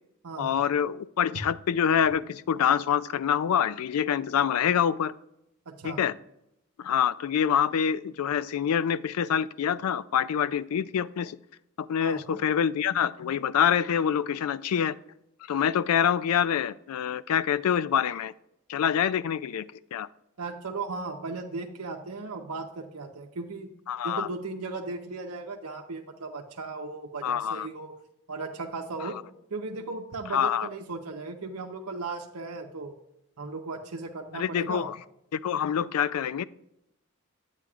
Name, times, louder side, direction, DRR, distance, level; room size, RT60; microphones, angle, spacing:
voice 1, 0.4-5.1 5.8-6.1 6.8-11.4 11.8-15.0 15.5-18.3 18.7-19.6 19.9-20.1 23.9-24.3 27.2-27.7 29.0-29.1 30.3-30.7 34.3-35.0 35.3-36.4, left 8 dB, 75° left, 17 dB, 0.3 m, -26 dB
voice 2, 5.7-6.0 12.0-12.4 20.4-23.7 24.0-27.9 28.3-29.2 29.5-32.9 33.4-34.9, right 3 dB, 85° right, 2 dB, 0.8 m, -36 dB
10.0 x 9.0 x 2.4 m, 0.82 s
head